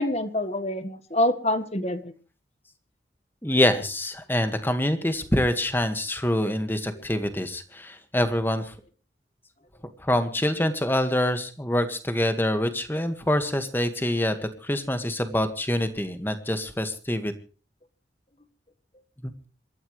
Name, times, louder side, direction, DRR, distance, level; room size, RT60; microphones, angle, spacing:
voice 1, 0.0-2.1 6.9-7.0, left 1 dB, 35° left, 11 dB, 1.7 m, -26 dB
voice 2, 3.4-8.7 10.0-14.4 14.6-17.3, left 1 dB, 10° left, 8 dB, 1.9 m, -25 dB
27.0 x 13.5 x 3.3 m, 0.37 s
head